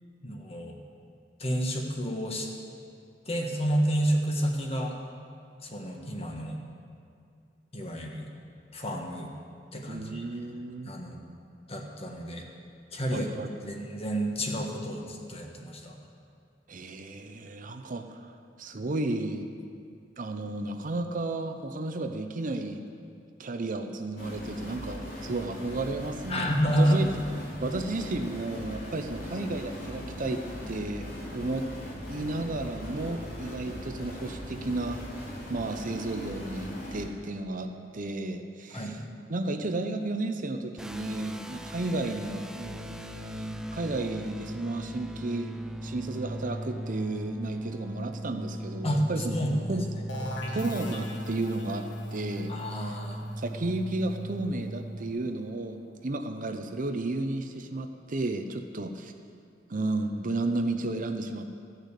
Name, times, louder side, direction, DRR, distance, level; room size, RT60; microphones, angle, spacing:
voice 1, 0.2-0.8 1.4-2.5 3.3-5.0 5.6-6.6 7.7-8.3 8.7-9.3 9.7-10.2 10.8-11.2 11.7-12.4 12.9-13.3 13.6-15.9 26.3-27.0 28.7-28.8 38.7-39.0 48.8-49.8 52.5-53.2, equal, 35° left, 1 dB, 1.4 m, -29 dB
voice 2, 9.9-10.9 13.1-13.8 16.7-18.3 18.6-19.5 20.2-22.8 23.4-26.5 26.8-27.1 27.6-31.7 32.1-35.0 35.5-39.0 39.3-45.5 45.8-49.4 49.7-49.8 50.5-51.9 52.1-52.5 53.4-59.1 59.7-61.5, right 2 dB, 50° right, 6 dB, 0.7 m, -33 dB
sound 1, 24.2-37.1, left 1 dB, 55° left, 2.9 m, -40 dB
sound 2, 40.8-55.1, equal, 5° right, 0.4 m, -38 dB
sound 3, 50.1-55.7, left 1 dB, 80° left, 1.4 m, -42 dB
14.0 x 6.5 x 8.2 m, 2.3 s
head